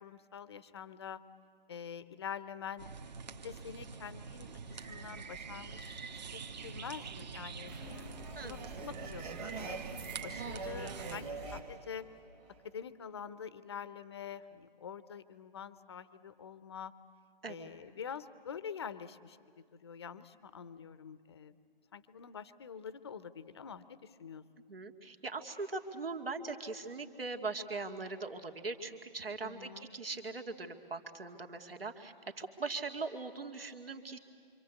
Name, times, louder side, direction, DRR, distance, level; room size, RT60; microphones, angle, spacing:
voice 1, 0.0-1.2 1.7-2.9 3.4-4.5 4.9-6.1 6.3-9.8 10.2-12.1 12.6-16.9 17.5-21.5 21.9-24.4 29.4-29.9, left 7 dB, 30° left, 15 dB, 0.7 m, -46 dB
sound 1, 2.8-11.2, right 5 dB, 45° right, 1.8 m, -45 dB
sound 2, 7.7-12.8, right 4 dB, 10° right, 1.1 m, -44 dB
voice 2, 8.3-8.9 17.4-17.7 24.7-34.2, right 3 dB, 75° right, 5 dB, 2.5 m, -41 dB
26.5 x 26.0 x 8.3 m, 2.3 s
figure-of-eight pair, 155°, 29 cm